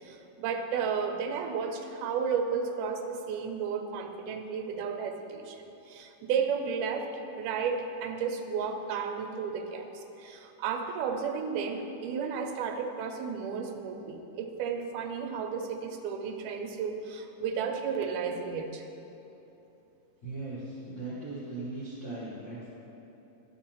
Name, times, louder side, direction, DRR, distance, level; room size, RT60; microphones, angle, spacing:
voice 1, 0.0-18.8, right 6 dB, 85° right, 5 dB, 2.2 m, -33 dB
voice 2, 20.2-22.7, right 2 dB, 50° left, -10 dB, 1.6 m, -38 dB
13.0 x 5.8 x 3.0 m, 2.9 s
omnidirectional pair, 3.6 m